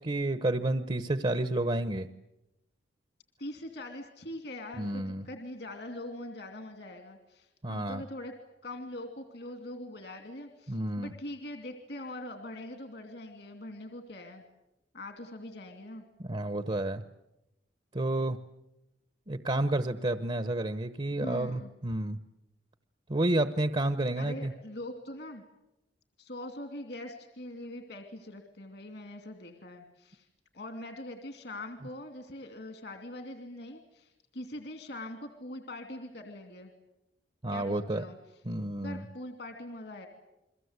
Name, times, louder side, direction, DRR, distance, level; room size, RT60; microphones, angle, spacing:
voice 1, 0.0-2.1 4.8-5.3 7.6-8.0 10.7-11.1 16.2-17.0 17.9-18.4 19.3-22.2 23.1-24.5 37.4-38.0 38.4-39.0, right 1 dB, 30° right, 11 dB, 0.9 m, -30 dB
voice 2, 3.4-8.3 8.6-14.4 14.9-16.0 21.1-21.7 24.2-25.4 26.2-30.3 30.5-36.7 37.5-38.2 38.8-40.1, left 1 dB, 65° left, 6 dB, 2.7 m, -42 dB
29.5 x 22.5 x 8.2 m, 0.89 s
head